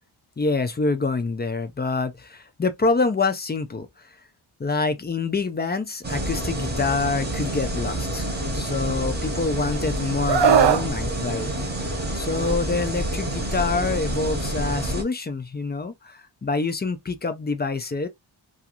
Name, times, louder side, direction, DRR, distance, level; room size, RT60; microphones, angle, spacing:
voice 1, 0.4-4.2 4.6-18.1, left 3 dB, 25° left, 0.3 m, -26 dB
sound 1, 6.0-15.0, right 1 dB, 20° right, 0.8 m, -28 dB
Screaming, 10.3-10.8 12.3-12.5, right 7 dB, 65° right, 0.5 m, -18 dB
2.5 x 2.4 x 2.8 m
wide cardioid pair, 155°, 48 cm